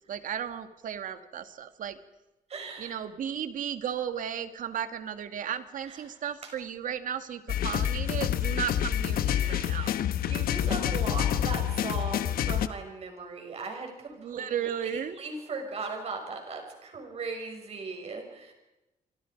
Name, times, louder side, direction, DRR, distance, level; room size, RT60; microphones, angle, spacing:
voice 1, 0.1-2.0 2.8-10.0 14.2-15.2, right 9 dB, 65° right, 10 dB, 1.8 m, -34 dB
voice 2, 2.5-3.0 5.9-6.2 6.4-6.5 9.4-18.5, right 4 dB, 45° right, 3 dB, 6.4 m, -38 dB
sound 1, 7.5-12.7, left 10 dB, 90° left, 1.0 m, -28 dB
27.5 x 25.0 x 5.2 m, 0.98 s
cardioid pair, 150°, 15 cm